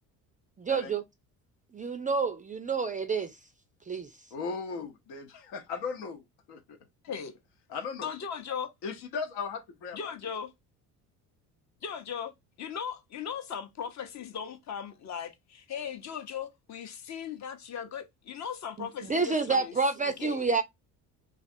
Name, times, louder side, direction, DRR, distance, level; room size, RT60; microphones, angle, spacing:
voice 1, 0.6-1.0 1.7-3.3 3.9-4.1 18.8-20.6, right 4 dB, 20° right, 0.4 m, -29 dB
voice 2, 4.3-6.8 7.7-8.1 8.8-10.1, left 5 dB, 65° left, 0.9 m, -37 dB
voice 3, 7.0-7.4 8.0-8.7 9.9-10.5 11.8-19.8 20.0-20.5, left 7 dB, 40° left, 0.8 m, -38 dB
3.3 x 2.4 x 2.5 m
hypercardioid pair, 60°, 44 cm